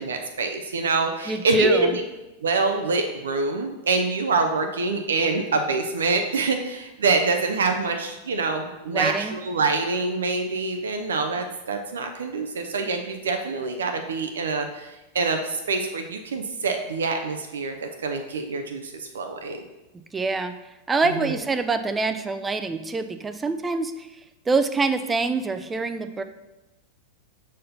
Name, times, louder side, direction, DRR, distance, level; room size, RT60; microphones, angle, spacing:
voice 1, 0.0-2.0 2.4-19.6 21.0-21.3, right 3 dB, 65° right, 5 dB, 0.5 m, -25 dB
voice 2, 1.3-2.0 8.9-9.3 20.1-20.5 20.9-24.1 24.5-26.2, right 3 dB, 15° right, 10 dB, 0.4 m, -25 dB
6.3 x 4.1 x 4.0 m, 1.0 s
figure-of-eight pair, 90°, 0 cm